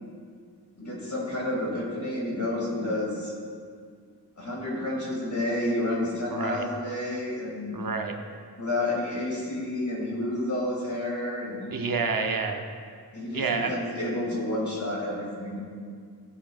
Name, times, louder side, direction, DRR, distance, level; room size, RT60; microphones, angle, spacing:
voice 1, 0.8-3.3 4.4-7.7 8.6-11.6 13.1-15.6, left 1 dB, 45° left, -4 dB, 2.4 m, -30 dB
voice 2, 6.3-6.7 7.7-8.1 11.7-12.7 13.3-13.8, right 4 dB, 60° right, 4 dB, 0.7 m, -28 dB
13.5 x 7.5 x 2.4 m, 2.1 s
wide cardioid pair, 80°, 39 cm